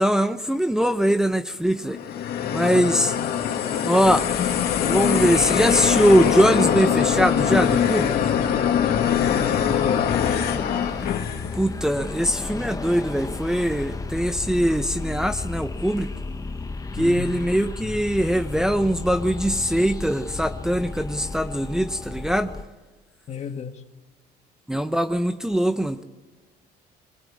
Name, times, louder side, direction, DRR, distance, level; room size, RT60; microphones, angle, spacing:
voice 1, 0.0-2.0 2.5-8.3 11.5-16.1 16.9-22.5 24.7-26.0, equal, 5° right, 0.8 m, -22 dB
sound 1, 1.9-11.6, left 9 dB, 70° left, 2.3 m, -23 dB
sound 2, 4.0-22.6, left 3 dB, 20° left, 1.1 m, -33 dB
voice 2, 9.1-10.1 16.9-17.4 23.3-23.8, left 6 dB, 40° left, 1.5 m, -32 dB
22.5 x 18.5 x 8.5 m
cardioid pair, 110°, 17 cm